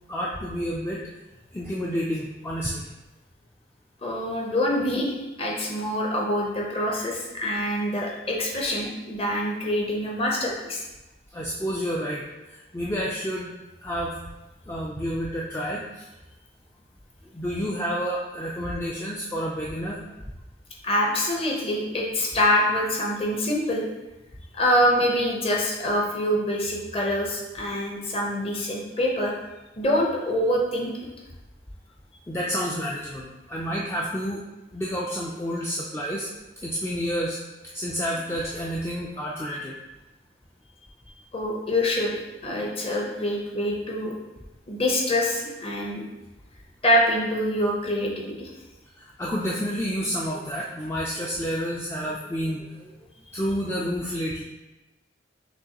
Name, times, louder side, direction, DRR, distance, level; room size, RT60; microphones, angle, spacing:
voice 1, 0.1-1.0 1.5-2.9 11.3-13.5 13.8-14.2 14.7-16.1 17.3-20.2 32.3-34.4 34.7-36.3 36.6-37.4 37.7-39.8 49.0-53.0 53.3-54.4, equal, 15° left, -4 dB, 0.3 m, -29 dB
voice 2, 4.0-10.8 20.8-23.9 24.5-29.3 29.8-30.9 41.3-44.2 44.7-46.0 46.8-48.5, left 1 dB, 30° left, -2 dB, 0.8 m, -25 dB
6.0 x 3.0 x 2.9 m, 1.0 s
head